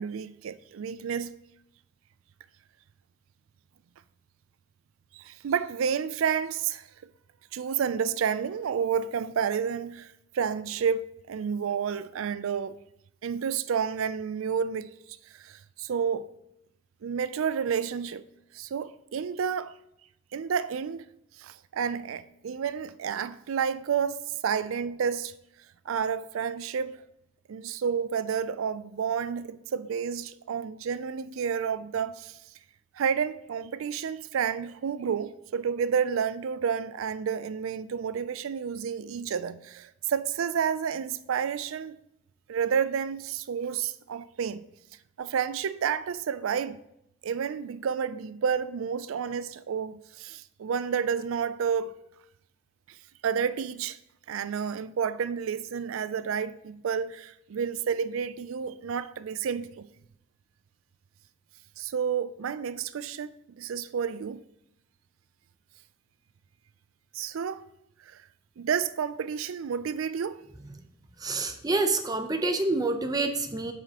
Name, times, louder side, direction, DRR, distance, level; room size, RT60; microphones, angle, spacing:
voice 1, 0.0-1.3 5.1-6.8 7.5-10.1 10.3-12.8 13.2-14.9 15.3-16.3 17.0-18.2 18.5-19.7 20.3-21.1 21.4-25.3 25.9-27.0 27.5-32.4 33.0-42.0 42.5-44.6 45.2-46.8 47.2-52.0 53.2-54.0 54.3-59.9 61.8-64.4 67.1-67.6 68.1-68.2 68.6-70.4, right 7 dB, 75° right, 0.4 m, -30 dB
voice 2, 71.2-73.7, right 3 dB, 20° right, 0.6 m, -27 dB
12.5 x 4.9 x 2.9 m
head